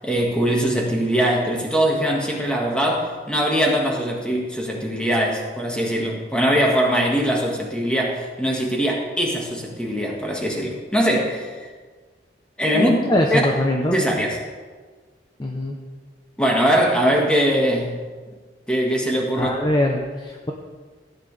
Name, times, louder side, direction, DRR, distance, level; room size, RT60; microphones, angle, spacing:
voice 1, 0.0-11.5 12.6-12.9 13.3-13.4 13.9-14.4 16.4-18.0 18.7-19.5, equal, 5° left, -1 dB, 1.8 m, -21 dB
voice 2, 12.7-14.0 15.4-15.8 19.4-20.5, left 1 dB, 25° left, 0 dB, 0.8 m, -22 dB
15.5 x 9.1 x 3.4 m, 1.4 s
head